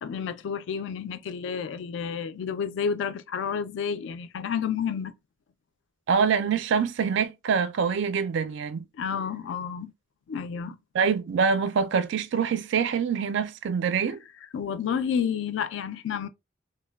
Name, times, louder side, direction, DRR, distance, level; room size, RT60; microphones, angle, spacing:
voice 1, 0.0-5.1 9.0-9.9 10.3-10.8 14.5-16.3, left 7 dB, 65° left, 0.3 m, -30 dB
voice 2, 6.1-8.9 10.9-14.2, right 6 dB, 65° right, 0.3 m, -25 dB
3.0 x 2.1 x 2.2 m
head